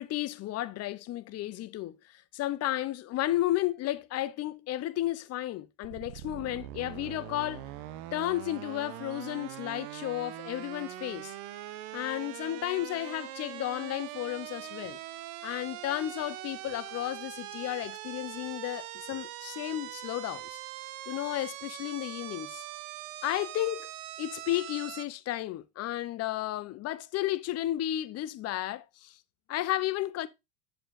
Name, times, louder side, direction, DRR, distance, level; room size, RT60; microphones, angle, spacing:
voice 1, 0.0-7.6 8.1-11.3 11.9-15.0 15.4-20.6 21.1-22.6 23.2-23.9 24.2-29.2 29.5-30.3, left 14 dB, 30° left, 0.6 m, -33 dB
sound 1, 5.8-25.1, right 14 dB, 60° right, 0.8 m, -42 dB
7.7 x 6.9 x 2.5 m
hypercardioid pair, 95°, 49 cm